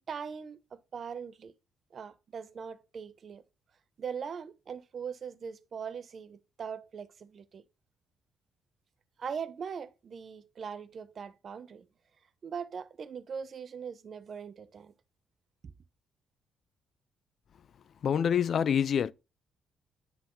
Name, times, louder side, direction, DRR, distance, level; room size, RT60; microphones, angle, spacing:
voice 1, 0.1-1.5 1.9-3.4 4.0-7.6 9.2-11.9 12.4-14.9, right 6 dB, 50° right, 0.7 m, -41 dB
voice 2, 18.0-19.1, left 8 dB, 55° left, 0.4 m, -26 dB
9.5 x 3.9 x 3.8 m
cardioid pair, 85°, 0 cm